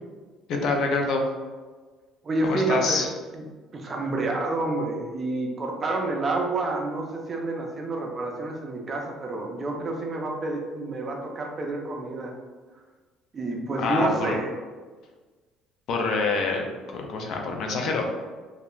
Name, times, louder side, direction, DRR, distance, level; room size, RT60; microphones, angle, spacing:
voice 1, 0.5-1.2 2.4-3.1 13.8-14.3 15.9-16.6 16.9-18.1, left 3 dB, 45° left, 2 dB, 0.4 m, -26 dB
voice 2, 2.2-3.0 3.3-3.4 3.7-12.3 13.3-14.5, right 2 dB, 25° right, 1 dB, 0.3 m, -29 dB
2.4 x 2.2 x 2.9 m, 1.4 s
cardioid pair, 175°, 0 cm